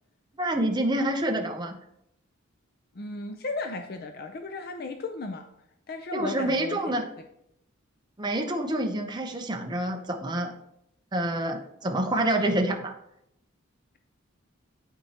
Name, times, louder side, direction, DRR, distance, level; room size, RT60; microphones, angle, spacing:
voice 1, 0.4-1.8 6.1-7.1 8.2-10.5 11.1-12.9, right 1 dB, 20° right, 3 dB, 0.8 m, -27 dB
voice 2, 2.9-5.4 5.9-6.8, left 3 dB, 50° left, 5 dB, 0.5 m, -35 dB
12.5 x 4.3 x 2.9 m, 0.78 s
head